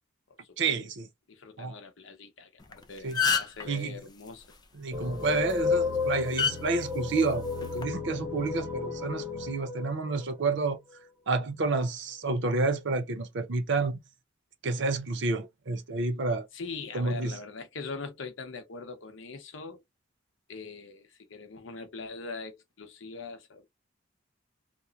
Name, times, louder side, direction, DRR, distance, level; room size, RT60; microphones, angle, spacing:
voice 1, 0.6-1.1 1.6-1.7 3.0-3.2 3.6-4.0 4.8-10.8 11.3-14.0 14.6-16.5 16.9-17.4, right 3 dB, 65° right, 0.6 m, -29 dB
voice 2, 1.3-4.5 16.5-19.8 20.5-23.7, left 4 dB, 85° left, 0.7 m, -42 dB
sound 1, 2.6-2.7 3.0-3.6 5.3-5.5 6.4-6.5 7.6-7.8, left 6 dB, 20° left, 0.5 m, -26 dB
sound 2, 4.9-11.1, left 4 dB, 10° right, 0.7 m, -33 dB
2.9 x 2.0 x 2.3 m
head